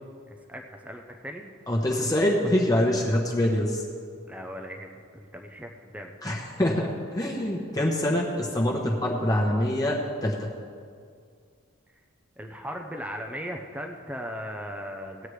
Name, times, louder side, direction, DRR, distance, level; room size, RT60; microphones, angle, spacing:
voice 1, 0.3-1.5 4.3-6.1 12.4-15.3, equal, 5° right, 3 dB, 0.6 m, -38 dB
voice 2, 1.7-3.8 6.2-10.5, left 1 dB, 15° left, -2 dB, 1.0 m, -25 dB
18.5 x 8.4 x 3.2 m, 2.2 s
head